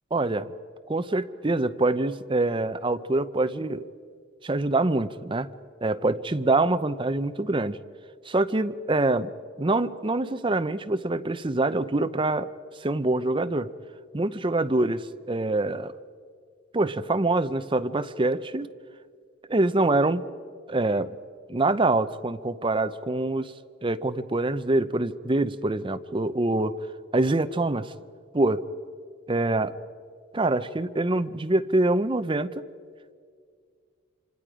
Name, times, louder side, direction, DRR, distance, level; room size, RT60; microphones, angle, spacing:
voice 1, 0.1-0.5 0.9-3.8 4.4-5.5 5.8-7.8 8.2-9.3 9.6-12.5 12.8-13.7 14.1-15.9 16.7-18.7 19.4-20.3 20.7-21.1 21.5-23.5 23.8-26.7 27.1-27.9 28.3-28.7 29.3-29.7 30.3-32.6, right 2 dB, 25° right, 12 dB, 0.7 m, -25 dB
27.0 x 26.0 x 5.0 m, 2.1 s
head